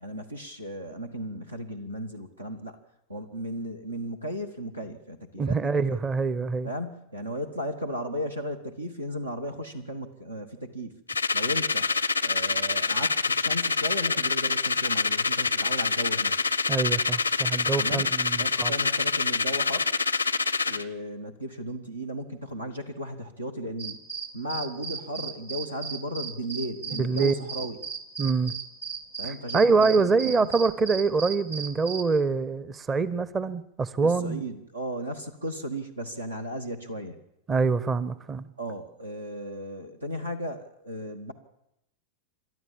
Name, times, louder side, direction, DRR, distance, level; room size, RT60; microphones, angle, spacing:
voice 1, 0.0-2.8 3.1-5.6 5.9-6.0 6.6-11.0 11.3-11.9 12.2-16.4 17.8-19.9 20.6-24.0 24.3-27.8 29.2-30.5 34.0-37.2 38.6-41.3, equal, 80° right, 5 dB, 1.3 m, -35 dB
voice 2, 5.4-6.7 16.7-18.7 27.0-27.5 28.2-28.5 29.5-34.4 37.5-38.5, right 4 dB, 20° right, 17 dB, 0.7 m, -25 dB
sound 1, 11.1-20.8, left 4 dB, 80° left, 0.6 m, -26 dB
sound 2, 23.8-32.0, right 6 dB, 55° right, 1.8 m, -36 dB
28.5 x 12.5 x 7.3 m, 0.83 s
figure-of-eight pair, 90°, 0 cm